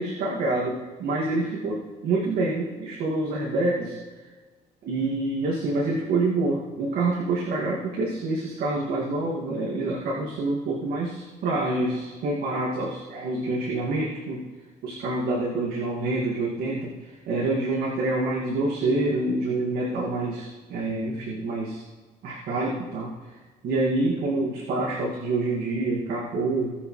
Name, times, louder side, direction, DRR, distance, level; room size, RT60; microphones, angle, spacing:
voice 1, 0.0-4.0 4.8-14.5 14.8-16.9 17.3-21.8 22.2-23.2 23.6-26.8, right 2 dB, 70° right, -5 dB, 2.2 m, -27 dB
19.0 x 6.7 x 3.3 m, 1.4 s
cardioid pair, 110°, 17 cm